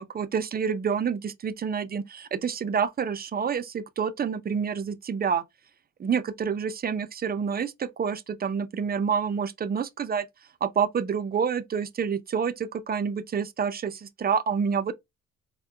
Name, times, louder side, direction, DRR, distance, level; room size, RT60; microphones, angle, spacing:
voice 1, 0.0-5.4 6.0-10.3 10.6-14.9, right 6 dB, 30° right, 0.5 m, -28 dB
4.5 x 2.1 x 2.2 m
cardioid pair, 90°, 30 cm